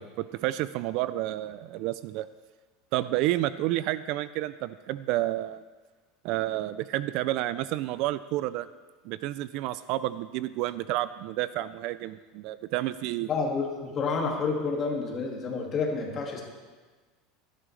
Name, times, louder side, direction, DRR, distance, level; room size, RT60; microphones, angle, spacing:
voice 1, 0.2-2.3 2.9-5.6 6.2-8.7 9.0-13.3, right 15 dB, 50° right, 15 dB, 0.3 m, -30 dB
voice 2, 13.3-16.4, left 4 dB, 25° left, 0 dB, 2.0 m, -29 dB
16.5 x 11.5 x 3.2 m, 1.4 s
supercardioid pair, 165°, 0 cm